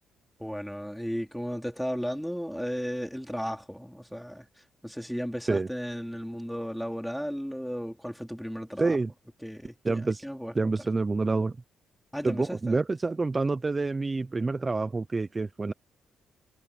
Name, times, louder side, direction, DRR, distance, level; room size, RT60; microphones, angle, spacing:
voice 1, 0.4-4.5 4.8-9.0 9.4-10.5 12.1-12.8, equal, ahead, 4.2 m, -35 dB
voice 2, 8.8-9.1 9.8-10.3 10.5-11.6 12.2-15.7, right 3 dB, 25° right, 0.8 m, -27 dB
cardioid pair, 90°, 0 cm